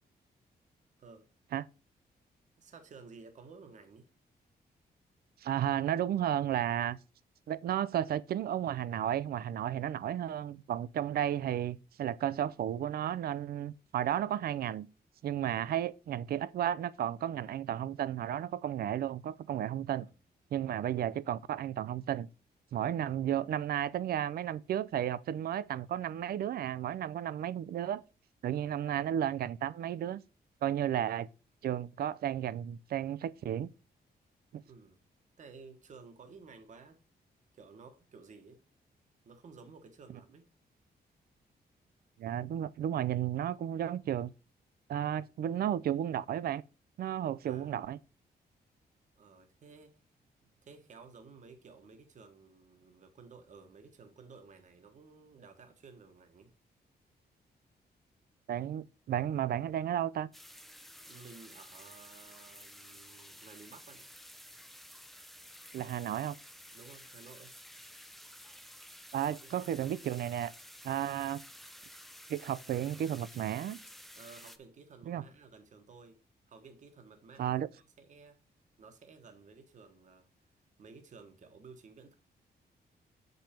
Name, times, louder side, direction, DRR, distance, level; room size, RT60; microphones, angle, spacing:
voice 1, 2.6-4.1 15.4-15.7 20.0-20.1 34.6-35.0 35.4-37.0 37.5-38.6 39.2-40.5 47.4-47.7 49.2-50.0 50.6-56.5 61.0-64.1 66.7-67.5 69.4-69.5 74.1-76.2 76.5-78.5 78.8-80.3 80.8-82.2, right 4 dB, 45° right, 1.2 m, -54 dB
voice 2, 5.4-7.0 7.5-14.9 15.2-20.1 20.5-22.3 22.7-28.0 28.4-30.2 30.6-31.3 31.6-33.7 34.5-34.6 42.2-44.3 44.9-46.6 47.0-48.0 58.5-60.3 65.7-66.4 69.1-70.5 70.8-71.4 72.3-73.8 75.1-75.2 77.4-77.7, right 10 dB, 65° right, 0.4 m, -33 dB
sound 1, 60.3-74.6, equal, ahead, 0.5 m, -52 dB
7.6 x 5.4 x 4.4 m
wide cardioid pair, 175°, 17 cm